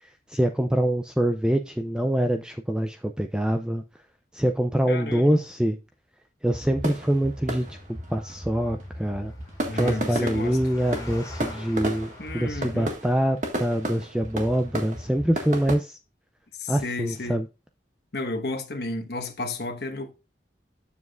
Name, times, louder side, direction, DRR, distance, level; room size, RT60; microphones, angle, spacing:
voice 1, 0.0-3.8 4.3-5.8 6.4-7.8 8.1-9.3 9.7-16.0 16.7-17.5, right 1 dB, 5° right, 0.3 m, -25 dB
voice 2, 4.9-5.4 9.7-10.6 12.2-12.9 16.6-17.4 18.1-20.1, left 2 dB, 60° left, 1.2 m, -32 dB
sound 1, 6.5-15.8, right 1 dB, 40° right, 1.5 m, -33 dB
Engine, 7.7-13.2, left 1 dB, 20° left, 2.2 m, -47 dB
8.3 x 7.2 x 2.4 m
head